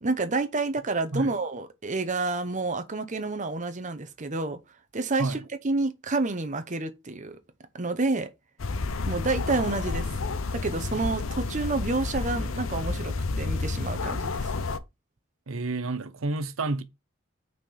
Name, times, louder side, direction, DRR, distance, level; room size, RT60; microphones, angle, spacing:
voice 1, 0.0-4.6 4.9-5.4 5.6-7.4 7.7-8.3 9.0-10.1 10.5-14.5, right 3 dB, 40° right, 0.9 m, -29 dB
sound 1, 8.6-14.8, left 3 dB, 80° left, 0.7 m, -30 dB
voice 2, 15.5-16.8, right 2 dB, 85° right, 0.8 m, -30 dB
5.8 x 4.4 x 5.6 m
head